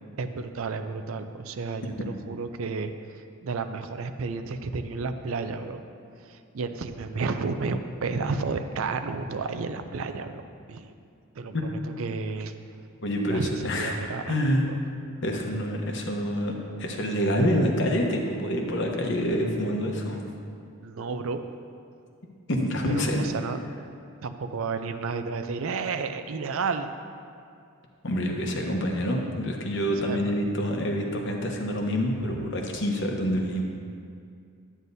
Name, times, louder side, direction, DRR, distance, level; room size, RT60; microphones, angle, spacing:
voice 1, 0.2-2.9 3.4-5.8 6.2-10.4 10.7-10.9 11.4-12.5 13.3-14.4 20.8-21.4 22.9-23.6 24.2-26.9 30.0-30.3 32.2-32.4, right 4 dB, 70° right, 8 dB, 0.5 m, -31 dB
voice 2, 13.0-14.0 14.3-14.6 15.2-20.2 22.5-23.2 28.0-33.6, equal, 55° left, 1 dB, 1.0 m, -27 dB
11.0 x 9.2 x 2.7 m, 2.4 s
head